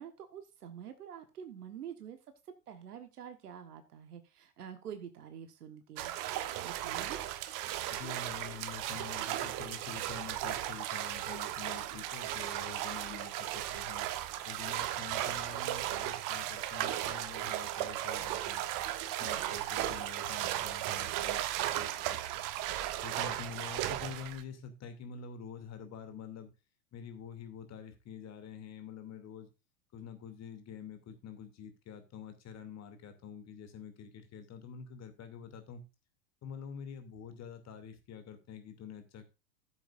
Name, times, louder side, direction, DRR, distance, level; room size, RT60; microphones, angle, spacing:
voice 1, 0.0-2.2 2.7-6.1 6.6-7.2, right 8 dB, 75° right, 8 dB, 1.5 m, -47 dB
sound 1, 6.0-24.4, right 13 dB, 45° right, 1.2 m, -36 dB
voice 2, 7.9-14.1 14.4-18.7 19.1-21.4 21.7-22.5 23.0-26.5 26.9-29.5 29.9-35.8 36.4-39.2, left 6 dB, 35° left, 7 dB, 2.7 m, -47 dB
14.5 x 7.7 x 2.5 m, 0.28 s
hypercardioid pair, 90°, 46 cm